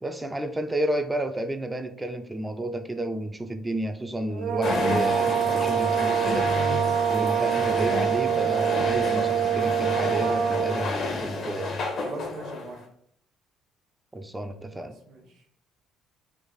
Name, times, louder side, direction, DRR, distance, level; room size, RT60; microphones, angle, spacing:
voice 1, 0.0-11.7 14.1-15.0, right 1 dB, 15° right, 0.5 m, -31 dB
sound 1, 4.3-10.9, right 9 dB, 85° right, 0.5 m, -25 dB
sound 2, 4.6-12.8, left 2 dB, 60° left, 0.9 m, -30 dB
voice 2, 12.0-12.8 14.8-15.4, right 3 dB, 60° right, 1.1 m, -41 dB
3.3 x 2.5 x 3.9 m
hypercardioid pair, 60°, 0 cm